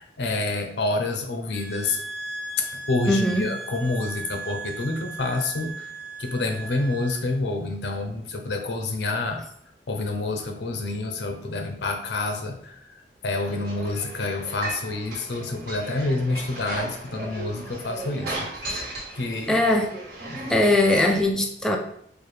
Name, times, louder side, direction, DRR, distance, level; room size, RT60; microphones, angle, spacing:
voice 1, 0.0-2.0 2.6-5.9 6.2-9.4 9.9-12.8 13.2-18.7 19.1-19.6 20.3-20.4, left 2 dB, 70° left, 4 dB, 0.6 m, -28 dB
sound 1, 1.5-7.4, right 3 dB, 85° right, 1.2 m, -37 dB
voice 2, 3.1-3.5 18.7-18.9 19.5-19.9 20.5-21.8, left 1 dB, 5° left, 1 dB, 0.3 m, -20 dB
sound 2, 13.3-21.2, right 2 dB, 60° right, 1.4 m, -36 dB
4.4 x 2.3 x 3.2 m, 0.67 s
head